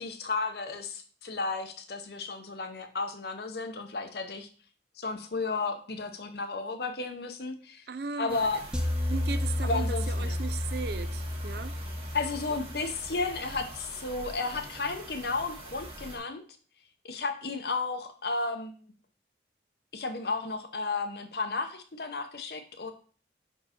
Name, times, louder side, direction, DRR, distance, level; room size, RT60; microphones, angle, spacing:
voice 1, 0.0-4.5 5.0-7.8 8.2-8.6 9.6-10.4 12.1-16.4 17.0-18.7 19.9-22.9, left 3 dB, 60° left, 0.8 m, -33 dB
voice 2, 7.9-8.5 9.1-11.8, right 5 dB, 60° right, 0.4 m, -37 dB
sound 1, 8.3-16.2, right 2 dB, 30° right, 1.6 m, -44 dB
sound 2, 8.7-13.1, left 1 dB, 5° right, 0.5 m, -31 dB
5.5 x 4.5 x 4.3 m
head